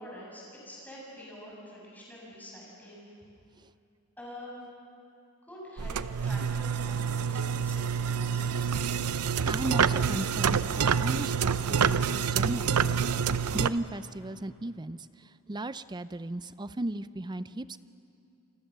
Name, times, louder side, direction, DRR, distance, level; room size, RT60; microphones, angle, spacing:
voice 1, 0.0-3.1 4.2-4.6 5.4-8.8, equal, 10° left, -4 dB, 7.9 m, -46 dB
sound 1, 5.8-13.7, right 6 dB, 85° right, 0.6 m, -27 dB
voice 2, 9.5-13.0 13.2-17.8, right 1 dB, 20° right, 14 dB, 0.5 m, -36 dB
28.5 x 24.0 x 6.8 m, 2.6 s
head